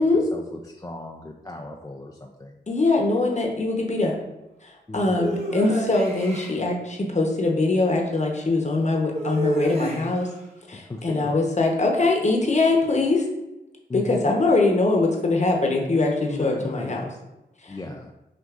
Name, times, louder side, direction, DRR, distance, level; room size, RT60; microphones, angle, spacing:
voice 1, 0.3-2.6 4.9-5.4 10.7-11.4 13.9-14.3 16.3-16.9 17.7-18.1, left 2 dB, 20° left, 1 dB, 0.4 m, -36 dB
voice 2, 2.7-4.1 4.6-10.3 10.7-13.2 13.9-17.0 17.6-17.8, left 2 dB, 40° left, 1 dB, 0.9 m, -22 dB
sound 1, 5.2-6.6 9.1-10.3, right 1 dB, 35° right, 1.2 m, -30 dB
5.9 x 2.6 x 2.5 m, 0.95 s
cardioid pair, 55°, 18 cm